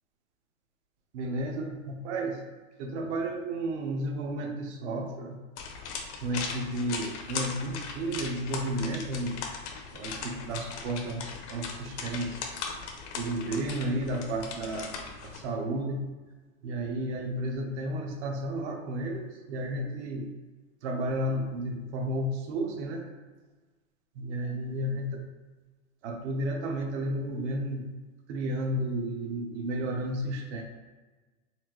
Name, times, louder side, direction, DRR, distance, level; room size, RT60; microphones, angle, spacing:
voice 1, 1.1-2.4 2.8-5.4 6.2-9.4 9.9-12.4 13.1-14.9 15.2-16.1 16.6-20.3 20.8-23.1 24.2-25.2 26.0-27.9 28.3-30.6, right 1 dB, 55° right, 2 dB, 0.8 m, -32 dB
sound 1, 5.6-15.4, left 5 dB, 55° left, 0.7 m, -39 dB
4.3 x 2.6 x 2.9 m, 1.3 s
supercardioid pair, 145°, 42 cm